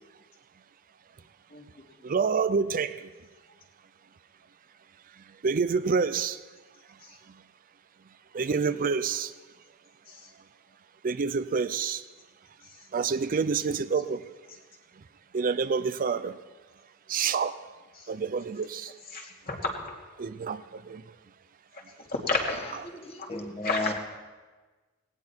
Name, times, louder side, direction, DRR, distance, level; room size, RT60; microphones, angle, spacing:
voice 1, 2.0-3.1 5.1-6.4 6.9-7.0 7.3-7.4 8.3-9.3 11.0-12.1 12.9-14.3 15.0-15.1 15.3-16.4 17.1-17.7 18.1-19.0 20.2-21.2, right 5 dB, 40° right, 12 dB, 0.5 m, -28 dB
voice 2, 19.1-19.7 21.7-22.7 23.2-23.3 23.6-23.9, left 3 dB, 45° left, 0 dB, 2.7 m, -32 dB
voice 3, 23.0-23.9, left 2 dB, 30° left, 4 dB, 1.7 m, -33 dB
18.5 x 17.5 x 4.4 m, 1.3 s
head